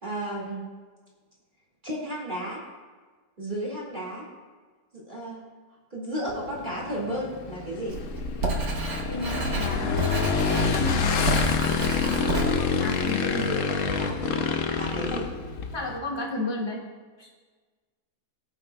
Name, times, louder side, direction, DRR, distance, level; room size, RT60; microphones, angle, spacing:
voice 1, 0.0-0.6 1.8-2.6 3.4-4.3 4.9-5.4 5.9-8.0 13.3-15.3, right 1 dB, 30° right, -5 dB, 2.2 m, -33 dB
Motorcycle / Engine, 6.3-16.0, left 5 dB, 60° left, 1.0 m, -27 dB
Writing, 7.9-13.5, right 2 dB, 60° right, 2.0 m, -31 dB
voice 2, 9.1-10.0 10.4-11.4 12.0-13.4 15.7-16.8 17.2-17.3, left 2 dB, 15° left, -3 dB, 1.7 m, -33 dB
18.0 x 8.9 x 2.3 m, 1.4 s
omnidirectional pair, 1.8 m